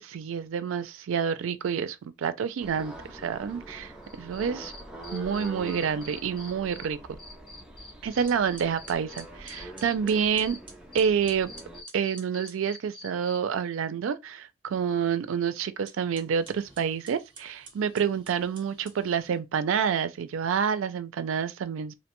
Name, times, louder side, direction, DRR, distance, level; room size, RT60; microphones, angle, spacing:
voice 1, 0.0-3.9 4.2-4.7 5.1-7.0 8.0-10.6 10.9-11.5 11.9-21.9, right 7 dB, 90° right, 0.4 m, -28 dB
sound 1, 2.6-11.8, right 1 dB, 5° right, 0.4 m, -44 dB
Cricket, 4.0-6.8 7.2-10.6 10.9-13.4, left 3 dB, 25° left, 0.9 m, -45 dB
sound 2, 8.3-12.6 15.7-19.4, right 4 dB, 25° right, 0.8 m, -51 dB
2.5 x 2.2 x 2.9 m
head